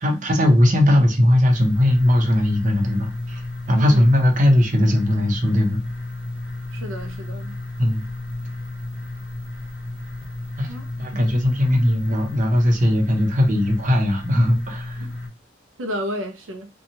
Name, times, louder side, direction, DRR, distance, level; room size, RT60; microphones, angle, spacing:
voice 1, 0.0-3.4 3.7-5.8 7.8-8.0 10.6-10.7 11.0-15.0, left 1 dB, 40° right, 0.7 m, -18 dB
sound 1, 1.5-15.3, left 2 dB, 10° right, 1.1 m, -32 dB
voice 2, 3.7-4.1 6.7-7.6 10.7-11.2 15.0-15.1 15.8-16.7, equal, 90° right, 0.5 m, -32 dB
2.7 x 2.3 x 2.7 m
head